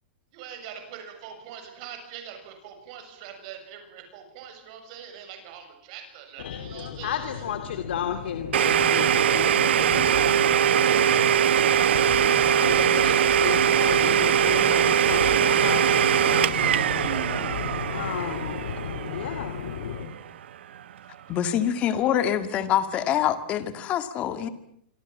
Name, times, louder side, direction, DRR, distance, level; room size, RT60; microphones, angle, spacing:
voice 1, 0.3-7.5, right 8 dB, 35° right, 5 dB, 7.1 m, -43 dB
voice 2, 6.4-20.1, left 8 dB, 70° left, 8 dB, 2.5 m, -32 dB
Domestic sounds home sounds, 8.5-20.2, right 9 dB, 80° right, 1.0 m, -22 dB
voice 3, 21.3-24.5, left 10 dB, 20° left, 11 dB, 2.0 m, -25 dB
27.5 x 25.0 x 7.4 m, 0.67 s
supercardioid pair, 175°, 6 cm